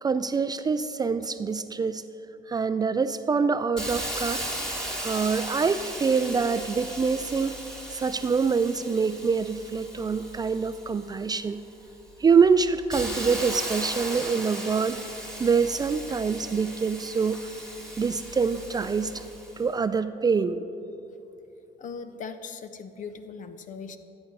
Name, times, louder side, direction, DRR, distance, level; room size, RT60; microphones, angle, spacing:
voice 1, 0.0-2.0 2.5-4.4 5.0-7.6 7.9-11.6 12.2-15.0 15.4-17.4 18.0-19.2 19.6-20.6, right 5 dB, 25° right, 12 dB, 0.3 m, -25 dB
Hiss, 3.8-11.3 11.8-19.6, equal, 5° left, 2.1 m, -37 dB
voice 2, 21.8-24.0, left 5 dB, 50° left, 10 dB, 0.8 m, -39 dB
13.5 x 8.8 x 5.4 m, 2.9 s
cardioid pair, 110°, 17 cm